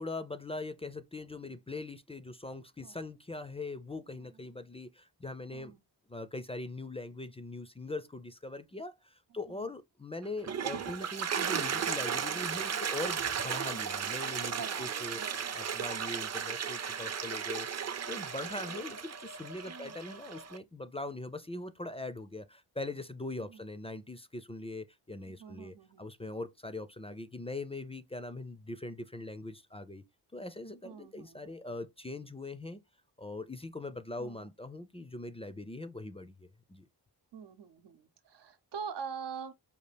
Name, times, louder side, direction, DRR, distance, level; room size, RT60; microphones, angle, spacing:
voice 1, 0.0-5.7 6.1-15.2 15.6-17.7 18.1-30.0 30.3-32.8 33.2-36.9, left 2 dB, 15° left, 0.4 m, -41 dB
voice 2, 5.5-5.8 9.5-9.7 14.5-15.4 19.7-19.9 23.5-23.6 25.2-26.0 30.8-31.8 34.2-34.5 37.3-39.5, right 6 dB, 90° right, 0.7 m, -45 dB
Toilet flush, 10.2-20.6, right 7 dB, 40° right, 0.5 m, -35 dB
5.2 x 2.4 x 3.3 m
wide cardioid pair, 95°, 40 cm